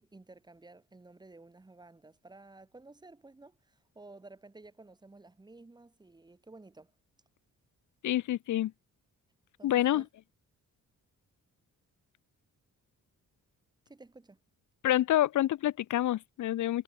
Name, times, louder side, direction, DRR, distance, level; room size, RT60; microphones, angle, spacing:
voice 1, 0.0-6.9 9.6-10.1 13.9-14.4, right 2 dB, 15° right, 1.0 m, -54 dB
voice 2, 8.0-8.7 9.6-10.1 14.8-16.8, left 13 dB, 65° left, 0.6 m, -27 dB
cardioid pair, 115°, 33 cm